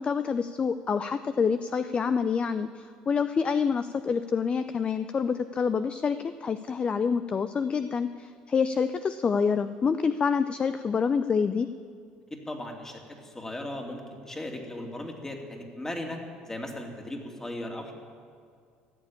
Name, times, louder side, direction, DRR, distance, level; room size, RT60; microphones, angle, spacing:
voice 1, 0.0-11.7, left 6 dB, 35° left, 11 dB, 0.5 m, -27 dB
voice 2, 12.3-16.2 16.4-17.9, left 1 dB, 15° left, 2 dB, 2.5 m, -37 dB
15.5 x 7.4 x 8.6 m, 2.2 s
supercardioid pair, 80°, 3 cm